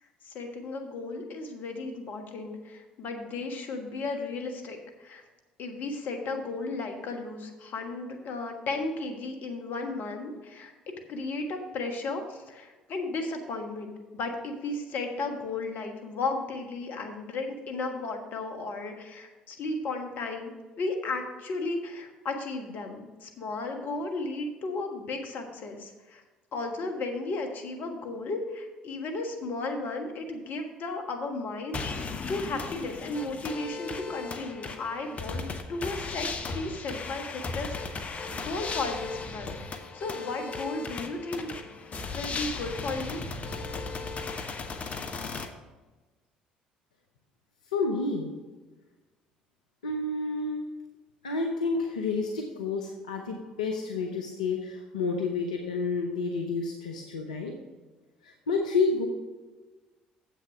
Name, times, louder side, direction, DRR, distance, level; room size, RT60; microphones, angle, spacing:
voice 1, 0.2-5.2 5.6-10.7 11.1-20.5 20.8-26.2 26.5-38.1 38.3-41.5 42.1-43.2, left 3 dB, 55° left, 4 dB, 1.4 m, -34 dB
sound 1, 31.7-45.5, left 4 dB, 40° left, 0.9 m, -36 dB
voice 2, 47.7-48.3 49.8-50.6 51.2-57.5 58.2-59.1, left 3 dB, 85° left, 2 dB, 0.7 m, -29 dB
7.7 x 6.3 x 5.9 m, 1.2 s
hypercardioid pair, 55°, 4 cm